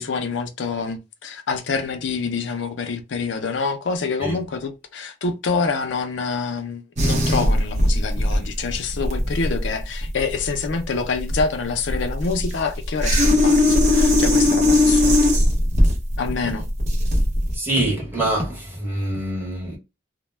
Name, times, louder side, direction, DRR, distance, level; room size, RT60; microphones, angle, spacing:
voice 1, 0.0-15.3 16.2-16.6, left 4 dB, 80° left, 0.5 m, -26 dB
sound 1, 7.0-17.6, left 1 dB, 40° right, 0.7 m, -19 dB
voice 2, 17.5-19.8, right 1 dB, 10° right, 1.0 m, -25 dB
2.2 x 2.1 x 3.1 m
head